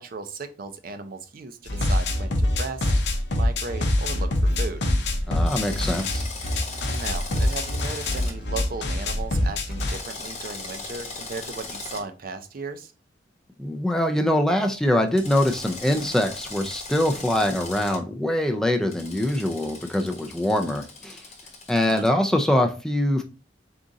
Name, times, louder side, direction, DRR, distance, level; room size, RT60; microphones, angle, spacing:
voice 1, 0.0-2.9 3.3-4.8 6.9-12.9 21.8-22.1, right 4 dB, 55° right, 0.5 m, -36 dB
sound 1, 1.7-10.0, left 1 dB, 70° left, 0.6 m, -25 dB
voice 2, 5.3-6.2 13.6-21.2 21.7-23.2, left 1 dB, 5° left, 0.4 m, -23 dB
Drill, 5.5-8.3 9.7-12.0 15.2-18.0 18.9-22.1, left 3 dB, 40° left, 1.0 m, -38 dB
3.8 x 2.4 x 3.9 m
head